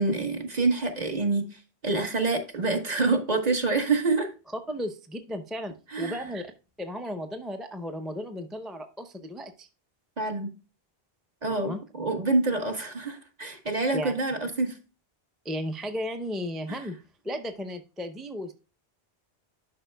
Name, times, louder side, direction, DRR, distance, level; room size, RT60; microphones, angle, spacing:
voice 1, 0.0-1.4 1.8-4.3 5.9-6.3 10.2-10.5 11.4-14.8 16.7-16.8, right 3 dB, 40° right, 1.4 m, -26 dB
voice 2, 4.7-6.5 6.8-9.7 11.5-11.8 13.9-14.1 15.4-17.0 17.2-18.5, equal, ahead, 0.5 m, -34 dB
11.0 x 5.6 x 2.2 m
omnidirectional pair, 1.0 m